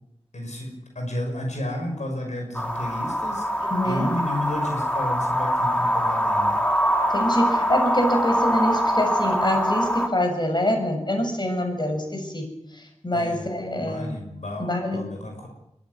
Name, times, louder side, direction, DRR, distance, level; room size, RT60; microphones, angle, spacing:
voice 1, 0.3-6.6 13.1-13.5 13.8-15.5, left 1 dB, 85° left, 2 dB, 5.8 m, -32 dB
sound 1, 2.5-10.1, equal, 10° left, 2.7 m, -23 dB
voice 2, 3.6-4.1 7.1-12.5 13.0-14.2 14.6-15.1, equal, 40° left, 4 dB, 7.2 m, -25 dB
22.5 x 16.0 x 9.8 m, 0.81 s
wide cardioid pair, 45°, 12 cm